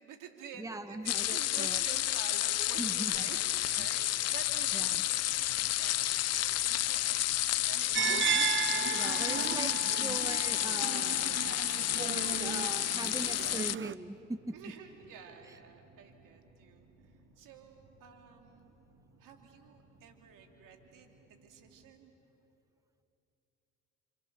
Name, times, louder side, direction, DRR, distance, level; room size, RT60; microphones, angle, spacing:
voice 1, 0.0-7.2 7.5-8.0 14.5-16.9 17.4-18.7 19.2-22.1, right 6 dB, 75° right, 4 dB, 2.9 m, -50 dB
voice 2, 0.6-1.8 2.8-3.1 4.7-5.0 8.9-9.7 10.0-11.4 11.9-14.5 15.5-15.6, right 2 dB, 10° right, 11 dB, 1.2 m, -41 dB
sound 1, 1.1-13.8, left 14 dB, 50° left, 0.5 m, -31 dB
sound 2, 3.1-21.9, right 2 dB, 55° right, 3.2 m, -61 dB
sound 3, 7.9-13.9, right 8 dB, 35° right, 0.8 m, -35 dB
29.0 x 26.5 x 6.8 m, 2.9 s
supercardioid pair, 55°, 32 cm